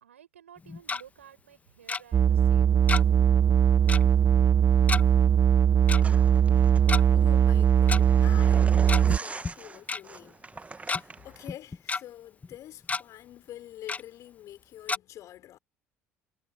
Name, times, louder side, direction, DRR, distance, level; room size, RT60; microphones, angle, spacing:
voice 1, 0.0-3.2, right 9 dB, 75° right, 7.0 m, -53 dB
Tick-tock, 0.6-1.0 1.9-2.0 2.9-3.2 3.5-3.6 3.9-4.1 4.9-5.0 5.9-6.0 6.8-7.0 7.9-8.0 8.7-9.2 9.4-9.5 9.9-10.0 10.6-11.0 11.5-12.0 12.4-12.5 12.8-13.0 13.9-14.0 14.9-15.0, left 4 dB, 20° left, 1.6 m, -30 dB
sound 1, 2.1-9.2, right 9 dB, 35° right, 0.6 m, -20 dB
sound 2, 6.0-11.5, right 3 dB, 20° right, 1.7 m, -43 dB
voice 2, 6.8-15.6, left 13 dB, 50° left, 5.2 m, -47 dB
figure-of-eight pair, 55°, 7 cm